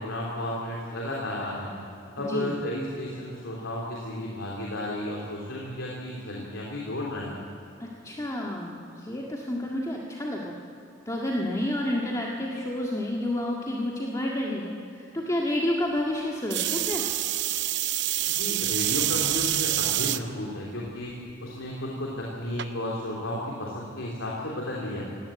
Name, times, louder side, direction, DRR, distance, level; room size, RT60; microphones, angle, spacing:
voice 1, 0.0-1.8 2.1-7.4 18.3-21.1 21.4-25.1, left 1 dB, 75° left, -4 dB, 3.5 m, -33 dB
voice 2, 2.2-2.6 7.8-10.5 11.1-17.0, left 1 dB, 15° left, -2 dB, 1.8 m, -30 dB
sound 1, 16.5-20.2 20.9-21.3 22.6-22.7, right 13 dB, 60° right, 0.7 m, -27 dB
18.5 x 18.0 x 8.9 m, 2.9 s
head